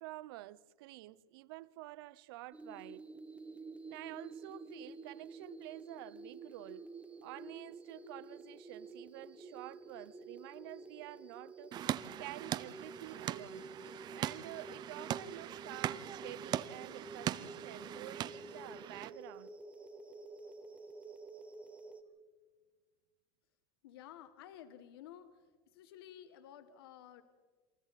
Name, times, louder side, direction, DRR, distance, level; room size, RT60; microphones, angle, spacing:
voice 1, 0.0-3.1 3.9-6.9 7.2-11.8 12.2-13.7 14.1-19.6, right 18 dB, 75° right, 0.7 m, -49 dB
sound 1, 2.5-22.0, right 2 dB, 10° right, 1.5 m, -50 dB
sound 2, 11.7-19.1, right 11 dB, 35° right, 0.7 m, -41 dB
voice 2, 23.8-25.4 25.7-27.2, left 10 dB, 85° left, 1.4 m, -53 dB
28.0 x 27.5 x 4.1 m
supercardioid pair, 140°, 12 cm